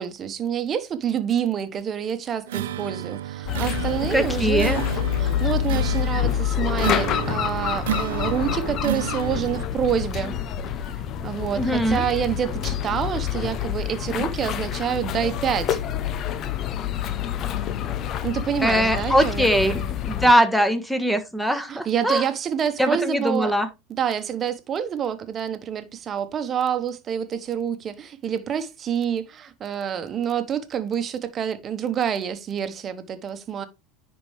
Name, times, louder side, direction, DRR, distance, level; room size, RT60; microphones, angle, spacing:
voice 1, 0.0-4.8 5.2-10.4 10.9-15.8 18.2-19.9 21.7-23.5 24.0-33.7, right 8 dB, 35° right, 1.2 m, -27 dB
sound 1, 2.5-9.7, right 11 dB, 85° right, 0.5 m, -31 dB
sound 2, 3.5-20.3, left 10 dB, 45° left, 0.8 m, -27 dB
voice 2, 4.1-4.8 11.6-12.0 18.6-19.7 20.1-22.3 22.8-23.7, equal, ahead, 1.4 m, -21 dB
10.0 x 4.4 x 3.3 m
hypercardioid pair, 105°, 0 cm